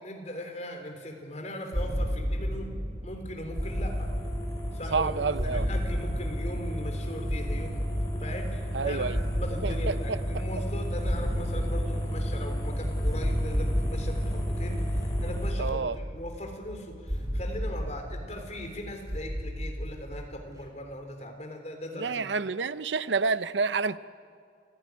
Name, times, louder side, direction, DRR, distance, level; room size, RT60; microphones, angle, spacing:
voice 1, 0.0-4.1 4.7-5.2 5.4-7.9 8.2-22.3, left 1 dB, 40° left, 4 dB, 3.6 m, -39 dB
sound 1, 1.7-20.6, equal, 20° right, 5.0 m, -34 dB
sound 2, 3.5-15.5, equal, 20° left, 5.8 m, -32 dB
voice 2, 4.9-5.6 8.7-9.2 9.6-10.2 15.6-15.9 22.0-24.0, right 4 dB, 85° right, 15 dB, 0.7 m, -28 dB
29.0 x 16.0 x 9.5 m, 2.2 s
head